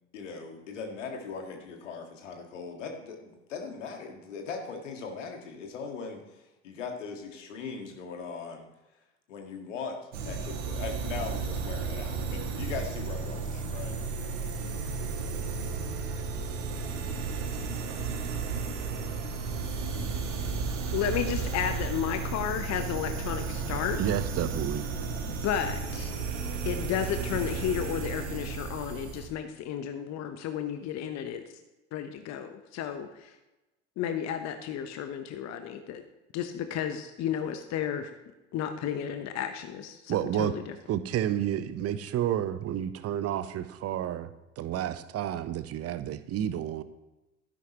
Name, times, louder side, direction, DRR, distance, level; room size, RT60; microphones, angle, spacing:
voice 1, 0.1-8.7 9.3-14.0, left 5 dB, 75° left, 3 dB, 1.9 m, -39 dB
sound 1, 10.1-29.3, right 4 dB, 70° right, 1.6 m, -33 dB
voice 2, 20.9-24.0 25.3-26.1 26.6-31.4 31.9-33.3 34.0-36.0 36.3-38.1 38.5-40.7, left 9 dB, 45° left, 8 dB, 0.9 m, -33 dB
voice 3, 24.0-24.9 40.1-40.5 40.9-44.3 44.6-46.8, right 11 dB, 40° right, 13 dB, 0.8 m, -30 dB
13.0 x 10.5 x 3.0 m, 1.0 s
figure-of-eight pair, 65°, 37 cm